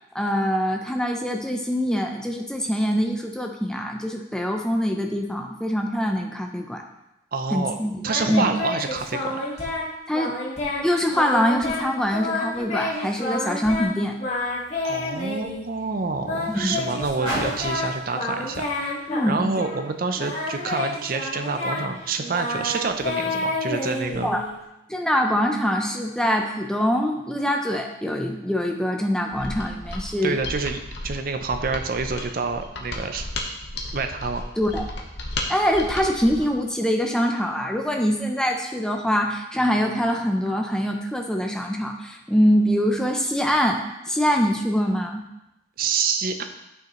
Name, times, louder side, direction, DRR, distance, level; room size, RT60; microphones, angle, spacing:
voice 1, 0.1-6.8 7.5-7.9 8.3-8.4 10.1-10.3 10.8-14.2 16.5-16.8 19.1-19.5 24.2-24.5 24.9-30.4 34.6-34.8 35.5-45.2, equal, 5° left, 2 dB, 0.5 m, -24 dB
voice 2, 7.3-7.7 8.0-9.6 14.8-19.0 19.3-24.3 30.2-33.3 33.9-34.5 45.8-46.4, right 4 dB, 45° right, 6 dB, 0.5 m, -27 dB
Singing, 8.0-9.9 10.1-10.8 11.1-11.9 12.1-13.9 14.2-15.6 16.2-19.8 20.2-24.6, left 2 dB, 35° left, 1.4 m, -29 dB
Car, 14.0-20.2 21.0-21.1, equal, 25° right, 2.8 m, -39 dB
Mechanisms, 29.3-36.5, left 2 dB, 55° left, 0.9 m, -34 dB
9.3 x 5.8 x 3.0 m, 0.90 s
head